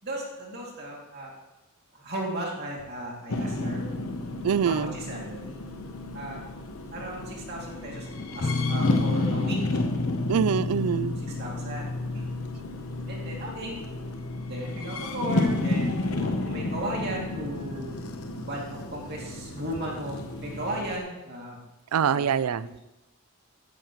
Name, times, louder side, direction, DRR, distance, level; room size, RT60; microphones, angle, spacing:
voice 1, 0.0-1.3 1.9-3.9 4.6-5.6 6.1-6.4 6.9-9.8 11.2-12.3 13.1-13.8 14.5-18.0 18.5-21.6 22.1-22.2 22.6-22.8, right 1 dB, 45° right, -2 dB, 2.6 m, -36 dB
sound 1, 3.3-21.0, left 2 dB, 75° left, 0.9 m, -32 dB
voice 2, 4.4-5.0 10.3-11.1 21.9-22.7, right 7 dB, 85° right, 17 dB, 0.4 m, -24 dB
sound 2, 8.4-16.0, left 3 dB, 40° left, 0.4 m, -33 dB
13.0 x 10.5 x 3.1 m, 1.0 s
head